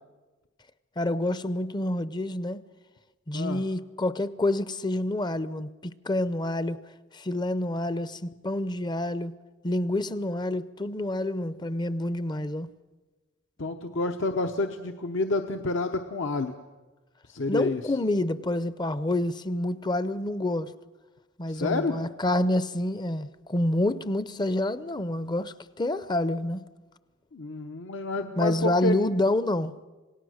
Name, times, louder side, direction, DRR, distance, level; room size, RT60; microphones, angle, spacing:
voice 1, 1.0-2.6 3.3-6.8 7.1-9.3 9.6-12.7 17.5-20.7 21.4-26.6 28.4-29.7, left 1 dB, 20° left, 0.6 m, -28 dB
voice 2, 13.6-16.6 17.3-17.9 21.5-22.0 27.3-29.0, left 2 dB, 65° left, 0.9 m, -29 dB
27.5 x 18.0 x 6.4 m
head